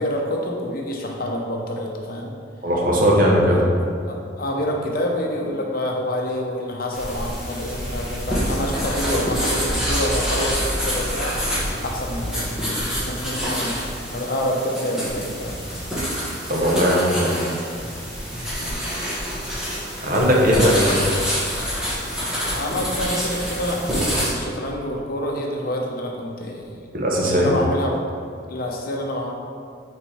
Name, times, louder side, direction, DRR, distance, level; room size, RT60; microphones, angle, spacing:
voice 1, 0.0-2.3 3.5-3.8 4.1-11.4 11.8-15.6 18.6-18.8 20.2-20.9 22.5-26.9 27.2-28.0 28.5-29.3, equal, 50° left, 0 dB, 0.8 m, -27 dB
voice 2, 2.6-3.6 16.5-17.4 20.0-21.0 26.9-27.5, equal, 45° right, -2 dB, 1.0 m, -18 dB
sound 1, 6.9-24.3, equal, 5° right, 1.1 m, -26 dB
5.1 x 4.4 x 4.3 m, 2.3 s
head